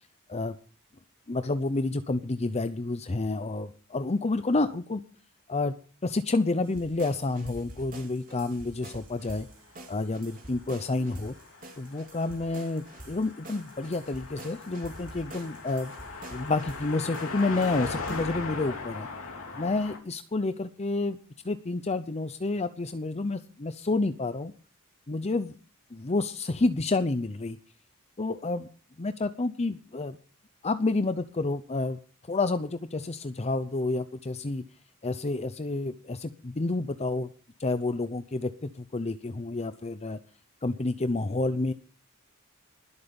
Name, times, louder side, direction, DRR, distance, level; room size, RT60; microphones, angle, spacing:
voice 1, 1.3-5.0 5.5-5.7 6.0-9.5 9.9-11.3 11.8-15.9 16.3-19.1 19.5-21.2 21.4-24.5 25.1-25.5 25.9-27.6 28.2-28.7 29.0-30.2 30.6-32.0 32.3-34.6 35.0-37.3 37.6-40.2 40.6-41.7, left 3 dB, 30° left, 11 dB, 0.7 m, -29 dB
sound 1, 6.6-18.2, right 1 dB, 40° right, 3.9 m, -47 dB
Car passing by, 9.9-20.0, left 4 dB, 65° left, 3.3 m, -39 dB
20.0 x 8.4 x 5.3 m, 0.39 s
head